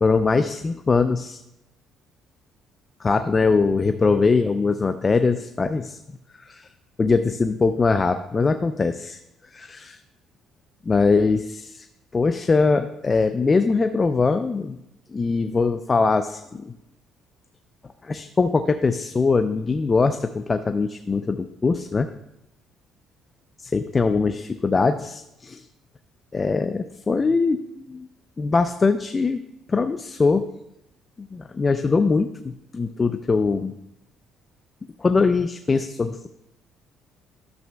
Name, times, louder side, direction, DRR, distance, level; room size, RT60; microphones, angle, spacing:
voice 1, 0.0-1.4 3.0-6.0 6.4-6.7 7.0-9.2 9.5-10.0 10.9-11.9 12.1-14.8 15.1-16.7 18.0-22.1 23.6-25.7 26.3-28.1 28.4-30.5 31.2-33.7 35.0-36.3, left 4 dB, 25° left, 9 dB, 0.4 m, -22 dB
12.0 x 6.9 x 2.2 m, 0.85 s
cardioid pair, 100°, 0 cm